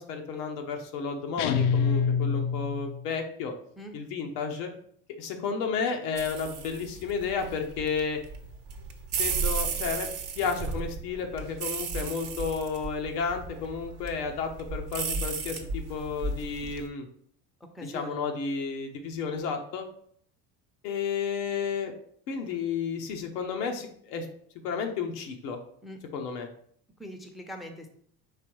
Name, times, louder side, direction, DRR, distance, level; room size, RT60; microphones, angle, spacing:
voice 1, 0.0-3.5 3.9-4.7 5.2-8.2 9.2-10.1 10.4-17.1 17.9-19.9 20.8-21.9 22.3-24.3 24.6-25.6 26.1-26.5, left 5 dB, 80° left, 3 dB, 0.9 m, -32 dB
sound 1, 1.4-3.1, left 6 dB, 60° left, 0.5 m, -26 dB
sound 2, 6.2-16.9, right 5 dB, 40° right, 0.8 m, -34 dB
voice 2, 17.6-18.2 25.8-26.0 27.0-27.9, equal, ahead, 5 dB, 0.6 m, -42 dB
5.0 x 3.4 x 3.0 m, 0.63 s
hypercardioid pair, 75°, 47 cm